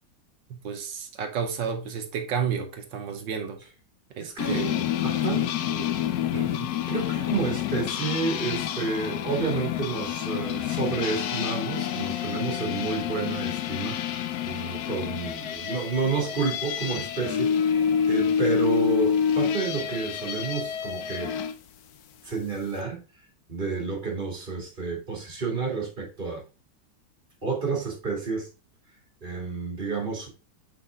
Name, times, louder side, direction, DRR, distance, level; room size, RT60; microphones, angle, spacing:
voice 1, 0.5-3.6 4.2-4.9 5.7-5.9 6.3-6.7, right 7 dB, 70° right, 1.5 m, -32 dB
voice 2, 4.2-4.7 5.0-5.5 6.9-14.0 14.4-17.8 18.1-21.3 22.2-23.0 23.5-26.4 27.4-28.5 29.2-30.3, right 4 dB, 25° right, 2.1 m, -30 dB
sound 1, 4.4-21.5, left 8 dB, 75° left, 0.9 m, -28 dB
5.9 x 4.6 x 3.5 m
omnidirectional pair, 2.2 m